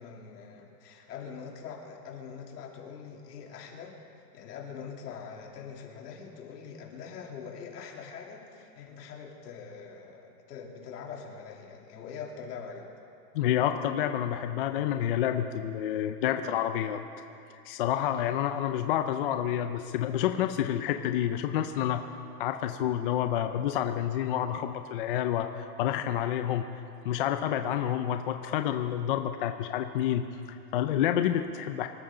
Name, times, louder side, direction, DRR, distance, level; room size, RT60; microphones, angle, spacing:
voice 1, 0.0-4.0 4.3-12.9, left 6 dB, 75° left, -1 dB, 3.3 m, -43 dB
voice 2, 13.3-17.0 17.6-22.0 22.4-26.7 27.0-31.9, left 10 dB, 35° left, 7 dB, 0.5 m, -29 dB
24.5 x 14.0 x 3.9 m, 2.6 s
supercardioid pair, 155°, 48 cm